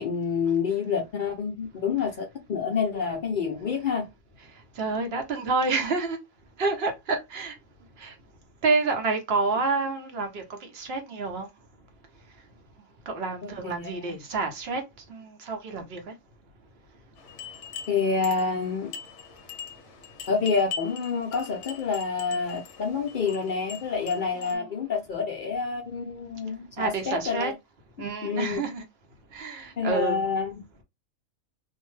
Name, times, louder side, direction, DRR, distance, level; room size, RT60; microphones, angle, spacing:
voice 1, 0.0-4.0 13.6-14.0 17.9-18.9 20.3-27.5 28.2-28.6 29.8-30.6, left 5 dB, 75° left, 0.4 m, -28 dB
voice 2, 4.8-6.2 6.6-7.5 8.0-8.1 8.6-11.5 13.1-14.8 15.1-16.0 24.3-24.6 26.8-27.5 28.0-28.8 29.3-30.2, right 3 dB, 55° right, 0.8 m, -28 dB
sound 1, 17.2-24.5, left 7 dB, 60° left, 0.9 m, -42 dB
2.6 x 2.1 x 3.1 m
omnidirectional pair, 1.5 m